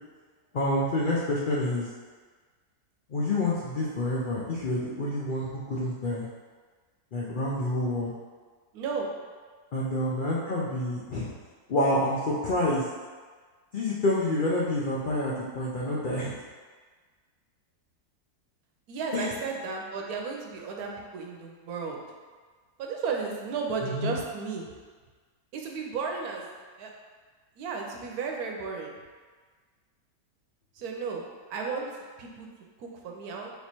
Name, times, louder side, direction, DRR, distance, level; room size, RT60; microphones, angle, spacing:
voice 1, 0.5-1.9 3.1-6.3 7.1-8.1 9.7-11.3 11.7-12.9 13.7-16.3 19.1-19.6 23.8-24.2, left 1 dB, 75° left, -6 dB, 0.4 m, -28 dB
voice 2, 8.7-9.1 18.9-22.0 22.8-24.7 25.5-26.5 26.8-26.9 27.6-28.9 30.7-31.2 31.5-31.9 32.2-32.5 32.8-33.5, right 5 dB, 75° right, 1 dB, 1.1 m, -34 dB
3.5 x 3.0 x 4.2 m, 1.5 s
omnidirectional pair, 1.6 m